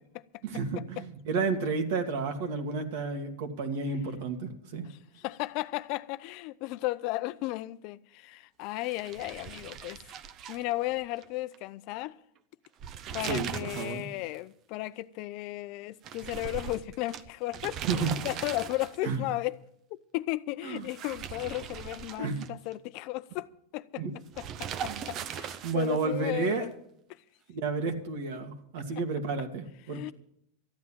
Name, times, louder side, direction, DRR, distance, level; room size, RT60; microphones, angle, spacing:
voice 1, 0.4-4.9 13.2-14.1 17.9-18.1 19.0-19.2 20.6-20.8 22.2-22.5 24.0-24.1 24.8-25.0 25.6-26.7 27.5-30.1, right 4 dB, 65° right, 2.4 m, -31 dB
voice 2, 4.9-10.0 10.5-12.2 13.1-19.6 19.9-24.0 24.4-26.7 27.1-27.2 29.9-30.1, left 18 dB, 55° left, 0.6 m, -35 dB
sound 1, 8.8-11.3 11.5-11.6 12.6-14.0 14.3-14.4 16.0-19.2 20.8-22.7 24.3-26.0, right 8 dB, 40° right, 0.8 m, -39 dB
14.0 x 9.5 x 7.5 m
supercardioid pair, 125°, 0 cm